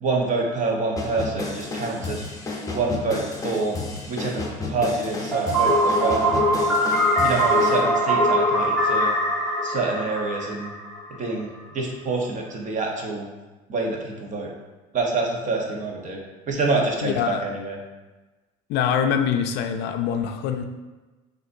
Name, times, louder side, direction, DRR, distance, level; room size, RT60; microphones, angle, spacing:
voice 1, 0.0-2.3 2.7-3.8 4.1-6.5 7.2-9.2 9.6-10.7 11.2-13.3 13.7-14.5 14.9-16.2 16.5-17.8, right 3 dB, 40° right, 0 dB, 1.0 m, -26 dB
sound 1, 1.0-7.8, left 3 dB, 15° left, 0.8 m, -32 dB
sound 2, 5.3-11.2, equal, ahead, 1.4 m, -22 dB
voice 2, 17.0-17.4 18.7-20.6, left 8 dB, 60° left, 6 dB, 0.5 m, -24 dB
6.2 x 2.6 x 2.6 m, 1.2 s
supercardioid pair, 85°, 19 cm